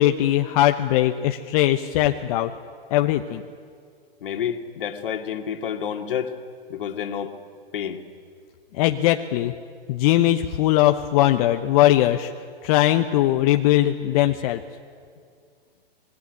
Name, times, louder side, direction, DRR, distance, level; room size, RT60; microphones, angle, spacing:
voice 1, 0.0-2.5 2.9-3.4 8.7-9.5 9.9-12.3 12.6-14.6, left 14 dB, 40° left, 6 dB, 1.0 m, -20 dB
voice 2, 4.2-6.4 6.7-7.3 7.7-8.0, left 8 dB, 60° left, 5 dB, 2.3 m, -29 dB
26.0 x 20.0 x 9.9 m, 2.2 s
figure-of-eight pair, 120°, 30 cm